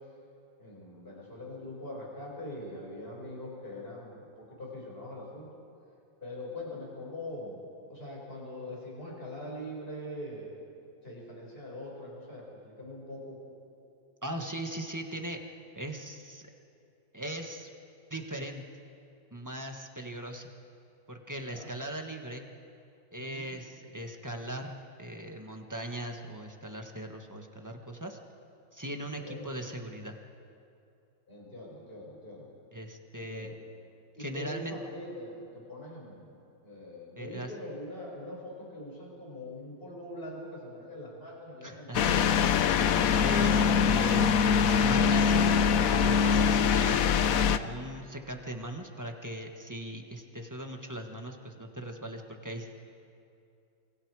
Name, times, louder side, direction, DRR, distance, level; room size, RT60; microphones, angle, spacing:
voice 1, 0.6-5.5 6.2-7.6 7.9-10.5 11.0-13.4 21.4-21.7 23.2-23.6 29.1-29.4 31.3-32.5 33.1-33.5 34.2-36.3 36.6-42.5, left 1 dB, 30° left, -3 dB, 6.1 m, -42 dB
voice 2, 14.2-15.4 15.7-16.4 17.1-17.7 18.1-18.6 19.3-20.5 21.1-22.4 23.1-28.2 28.7-30.2 32.7-33.5 34.2-34.7 37.2-37.5 41.6-42.2 42.8-44.3 44.8-45.5 45.9-52.7, right 1 dB, 10° right, 3 dB, 1.3 m, -39 dB
sound 1, 41.9-47.6, left 7 dB, 65° left, 0.9 m, -23 dB
28.0 x 24.0 x 4.9 m, 2.7 s
omnidirectional pair, 2.1 m